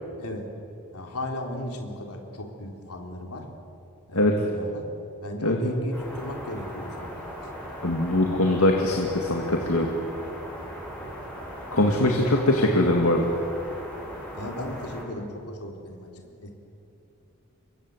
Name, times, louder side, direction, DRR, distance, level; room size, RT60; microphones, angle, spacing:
voice 1, 0.9-3.5 4.1-4.9 5.2-7.2 14.3-16.5, left 1 dB, 90° left, 2 dB, 3.9 m, -36 dB
sound 1, 5.9-15.0, equal, 5° left, 7.9 m, -38 dB
voice 2, 7.8-9.9 11.7-13.3, left 1 dB, 70° left, 1 dB, 2.5 m, -22 dB
28.5 x 23.5 x 8.2 m, 2.7 s
head